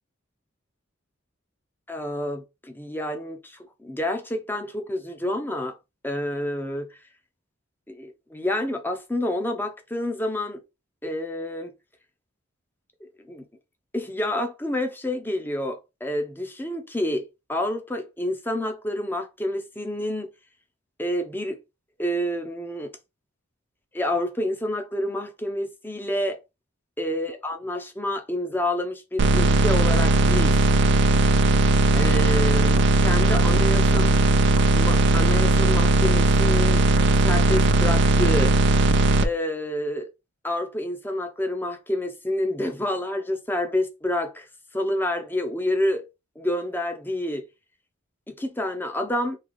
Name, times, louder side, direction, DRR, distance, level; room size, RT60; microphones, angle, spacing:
voice 1, 1.9-5.8 6.0-7.0 7.9-10.6 11.0-11.7 13.0-13.4 13.9-20.3 21.0-21.6 22.0-22.9 23.9-26.4 27.0-30.6 31.9-34.1 34.7-36.8 37.2-38.5 39.2-40.1 40.4-44.5 44.7-46.1 46.4-47.4 48.3-49.4, left 1 dB, 10° left, 0.6 m, -28 dB
sound 1, 29.2-39.2, right 2 dB, 55° right, 0.4 m, -18 dB
3.2 x 2.9 x 3.9 m
head